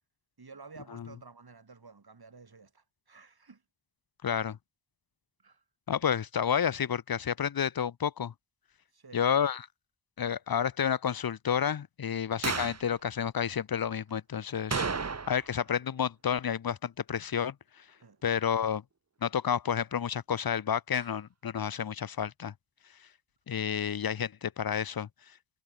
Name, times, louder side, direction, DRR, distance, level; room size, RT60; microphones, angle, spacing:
voice 1, 0.4-3.6 5.4-5.6 8.9-9.3 12.1-12.3 18.0-18.2, right 4 dB, 60° right, 4.9 m, -52 dB
voice 2, 4.2-4.6 5.9-8.3 9.1-9.7 10.2-14.9 15.3-17.5 18.2-18.8 19.2-22.5 23.5-25.1, left 8 dB, 55° left, 0.7 m, -30 dB
sound 1, 12.4-12.9 14.7-15.6 15.8-15.9 20.9-21.1, right 5 dB, 35° right, 1.1 m, -32 dB
wide cardioid pair, 65°, 43 cm